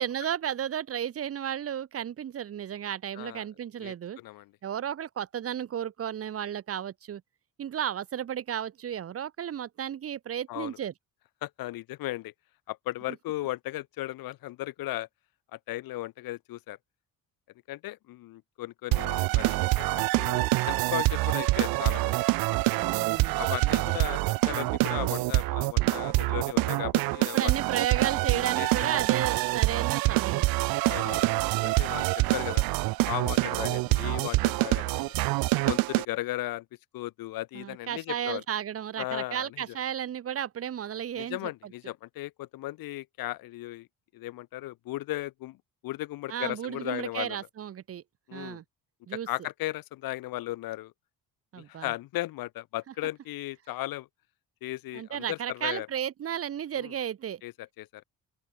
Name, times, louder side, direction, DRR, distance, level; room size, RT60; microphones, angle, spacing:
voice 1, 0.0-4.2 4.6-7.2 7.6-10.9 22.7-23.4 27.2-30.5 37.5-41.5 46.3-48.0 48.3-48.6 49.1-49.3 51.5-51.9 54.9-57.4, right 9 dB, 40° right, 1.2 m, -33 dB
voice 2, 3.2-3.5 3.8-4.5 10.5-10.8 11.4-12.3 12.7-15.1 15.5-16.8 17.7-22.2 23.4-24.2 24.5-27.5 28.3-28.9 30.8-32.6 33.0-35.1 35.6-36.7 36.9-38.4 39.0-39.6 41.2-43.9 44.1-45.6 45.8-47.4 48.3-48.6 49.3-50.9 51.6-54.1 54.6-55.9 56.8-56.9 57.4-58.0, left 16 dB, 85° left, 1.8 m, -36 dB
sound 1, 18.9-36.1, right 21 dB, 85° right, 0.5 m, -26 dB
open air
cardioid pair, 140°, 34 cm